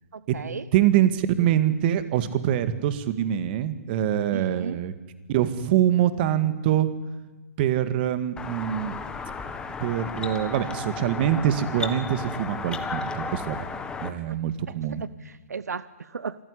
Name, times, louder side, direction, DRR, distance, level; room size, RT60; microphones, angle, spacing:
voice 1, 0.1-0.7 4.3-4.8 14.7-16.4, right 5 dB, 85° right, 17 dB, 0.9 m, -35 dB
voice 2, 0.7-4.9 5.3-6.9 7.6-9.0 9.8-13.6 14.0-15.0, right 11 dB, 40° right, 12 dB, 2.0 m, -24 dB
sound 1, 8.4-14.1, left 4 dB, 10° left, 1.7 m, -34 dB
26.5 x 14.5 x 10.0 m, 1.2 s
hypercardioid pair, 140°, 9 cm